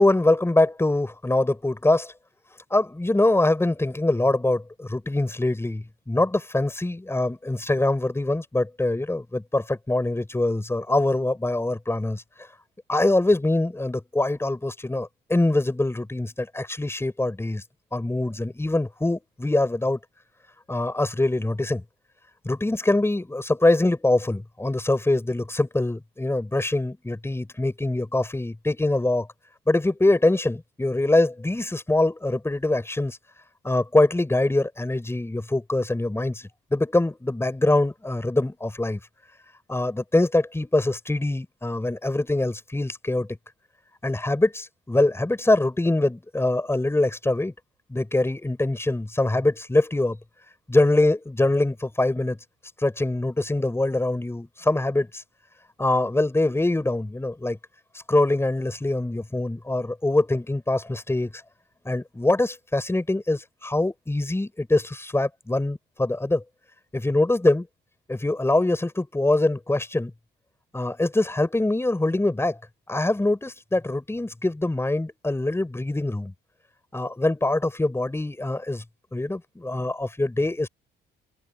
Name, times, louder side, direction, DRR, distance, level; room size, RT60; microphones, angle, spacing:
voice 1, 0.0-2.1 2.7-12.2 12.9-17.6 17.9-20.0 20.7-21.8 22.5-29.3 29.7-33.2 33.6-39.0 39.7-43.3 44.0-47.5 47.9-50.2 50.7-52.4 52.8-55.2 55.8-57.6 58.1-61.4 61.9-66.4 66.9-67.7 68.1-70.1 70.7-72.6 72.9-76.3 76.9-78.8 79.1-80.7, left 2 dB, 10° left, 5.6 m, -23 dB
cardioid pair, 90°, 20 cm